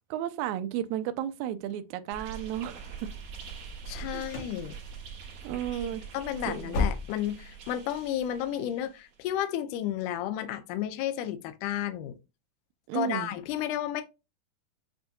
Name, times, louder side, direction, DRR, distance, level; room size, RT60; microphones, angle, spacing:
voice 1, 0.1-3.1 4.0-4.2 5.4-6.0 6.5-6.9 12.9-13.3, right 11 dB, 85° right, 1.7 m, -33 dB
sound 1, 2.1-9.2, right 6 dB, 65° right, 2.3 m, -44 dB
voice 2, 3.9-4.8 5.7-12.2 12.9-14.0, left 11 dB, 80° left, 1.9 m, -32 dB
sound 2, 3.9-4.6 4.9-5.3 5.6-5.8 6.2-7.5 7.8-7.9 8.4-8.5, left 4 dB, 65° left, 1.7 m, -33 dB
7.4 x 2.6 x 2.3 m
omnidirectional pair, 3.9 m